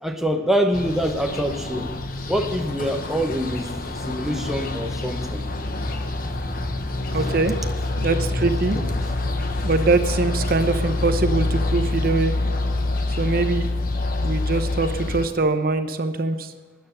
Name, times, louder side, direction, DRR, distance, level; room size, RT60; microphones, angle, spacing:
voice 1, 0.0-1.9 2.3-3.7 4.0-5.5 6.6-6.7 7.6-7.7 8.7-9.0, equal, ahead, 3 dB, 0.8 m, -25 dB
sound 1, 0.7-15.3, left 2 dB, 50° left, 1.1 m, -26 dB
sound 2, 4.2-12.2, left 1 dB, 30° left, 2.9 m, -46 dB
voice 2, 7.1-7.6 8.0-8.8 9.6-12.3 13.2-13.7 14.2-16.5, right 3 dB, 50° right, 9 dB, 0.8 m, -23 dB
13.5 x 9.4 x 5.6 m, 1.4 s
head